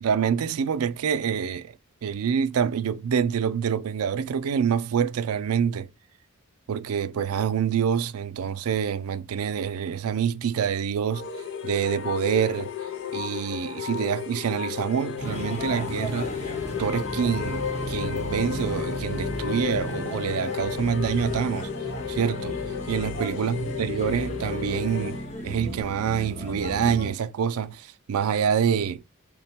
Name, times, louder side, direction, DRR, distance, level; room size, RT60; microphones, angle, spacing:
voice 1, 0.0-1.7 2.0-5.9 6.7-11.3 11.6-12.7 13.1-16.3 16.8-21.7 22.1-29.0, right 7 dB, 80° right, 0.4 m, -26 dB
sound 1, 11.1-25.3, left 8 dB, 60° left, 0.5 m, -33 dB
sound 2, 15.2-27.1, equal, 30° left, 0.9 m, -35 dB
3.6 x 2.1 x 4.3 m
head